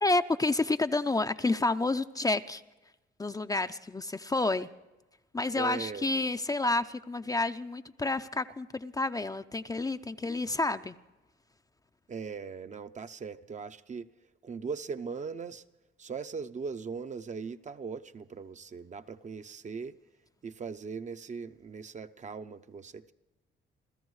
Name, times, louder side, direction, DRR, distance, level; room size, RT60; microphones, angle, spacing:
voice 1, 0.0-2.6 3.2-4.7 5.3-11.0, left 2 dB, 20° left, 0.5 m, -29 dB
voice 2, 5.5-6.1 12.1-14.1 14.4-15.6 16.0-20.0 20.4-23.1, right 5 dB, 35° right, 0.6 m, -39 dB
29.5 x 14.0 x 3.2 m
cardioid pair, 90°, 20 cm